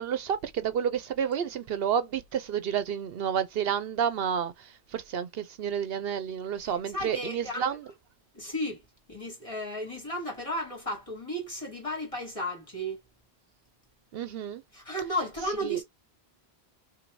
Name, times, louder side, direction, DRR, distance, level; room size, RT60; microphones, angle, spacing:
voice 1, 0.0-7.8 14.1-14.6 15.7-15.8, right 8 dB, 70° right, 0.8 m, -30 dB
voice 2, 6.6-7.8 8.3-13.0 14.7-15.8, equal, 30° left, 2.3 m, -34 dB
6.0 x 2.7 x 2.6 m
omnidirectional pair, 1.1 m